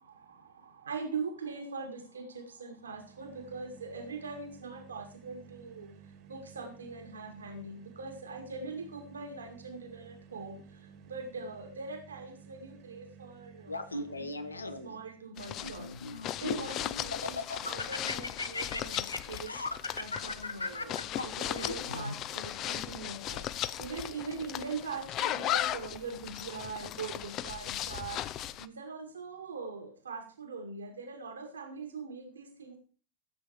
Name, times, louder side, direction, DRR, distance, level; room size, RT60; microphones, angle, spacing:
voice 1, 0.8-5.9 6.3-10.6 11.1-14.3 14.8-15.9 16.4-19.5 20.0-23.5 23.8-28.2 28.6-32.8, right 4 dB, 70° right, 5 dB, 2.1 m, -41 dB
sound 1, 2.8-15.4, right 7 dB, 40° right, 1.7 m, -54 dB
Laughter, 13.7-15.0 15.6-16.7 17.1-22.1, left 3 dB, 80° left, 1.0 m, -37 dB
sound 2, 15.4-28.7, left 12 dB, 35° left, 0.7 m, -37 dB
15.5 x 8.0 x 4.7 m, 0.38 s
figure-of-eight pair, 90°, 0 cm